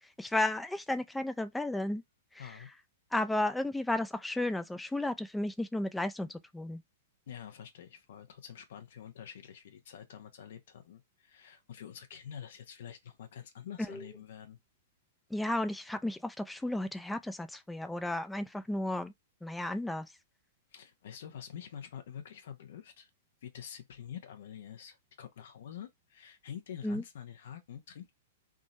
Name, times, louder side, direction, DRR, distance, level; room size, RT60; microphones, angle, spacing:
voice 1, 0.2-2.0 2.3-2.6 3.1-6.8 13.9-14.0 15.3-19.1 19.4-20.1 26.8-27.0, left 1 dB, 5° left, 0.5 m, -33 dB
voice 2, 7.3-14.6 20.7-23.1 23.4-28.1, left 9 dB, 70° left, 0.9 m, -47 dB
3.7 x 2.6 x 4.2 m
hypercardioid pair, 115°, 0 cm